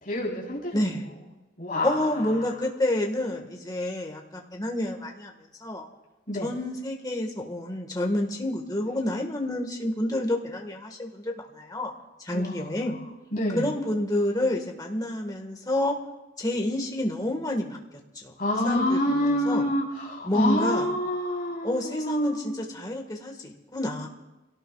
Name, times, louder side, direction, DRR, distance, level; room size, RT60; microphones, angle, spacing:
voice 1, 0.0-1.0 1.6-1.9 6.3-6.5 8.9-9.0 12.3-13.0 13.3-13.7 18.4-22.6, left 1 dB, 45° left, -4 dB, 3.8 m, -27 dB
voice 2, 0.7-1.1 1.8-5.9 6.4-11.9 12.2-13.0 13.6-16.0 16.4-17.8 18.1-18.4 18.6-19.6 20.2-20.9 21.6-24.1, left 1 dB, 20° left, 1 dB, 1.6 m, -29 dB
27.0 x 17.0 x 2.4 m, 1.1 s
head